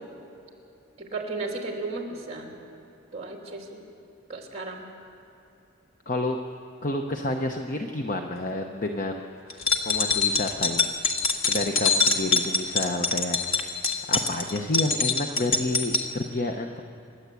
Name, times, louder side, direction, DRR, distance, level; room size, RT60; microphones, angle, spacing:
voice 1, 1.0-2.5 3.1-3.8 4.3-4.9 11.8-12.0, right 3 dB, 30° right, 1 dB, 2.8 m, -34 dB
voice 2, 6.1-6.4 6.8-11.0 11.5-13.8 14.1-16.8, left 2 dB, 40° left, 3 dB, 0.9 m, -30 dB
sound 1, 9.5-16.1, left 4 dB, 90° left, 1.8 m, -24 dB
28.0 x 11.5 x 8.4 m, 2.8 s
head